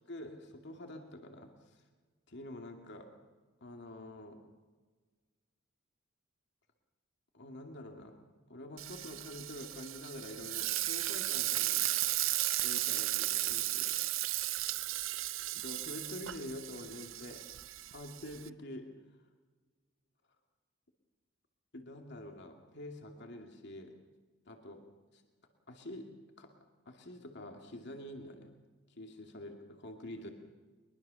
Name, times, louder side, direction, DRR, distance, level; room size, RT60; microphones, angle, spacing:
voice 1, 0.1-1.8 2.3-3.1 3.6-4.4 7.3-8.2 8.5-11.8 12.6-14.0 15.5-17.4 17.9-18.9 21.7-23.9 24.5-24.8 25.1-25.2 25.7-26.1 26.4-26.5 26.9-28.5 28.9-30.3, left 1 dB, 55° left, 3 dB, 2.4 m, -47 dB
Frying (food), 8.8-18.5, right 16 dB, 70° right, 0.7 m, -35 dB
23.0 x 22.0 x 7.0 m, 1.4 s
head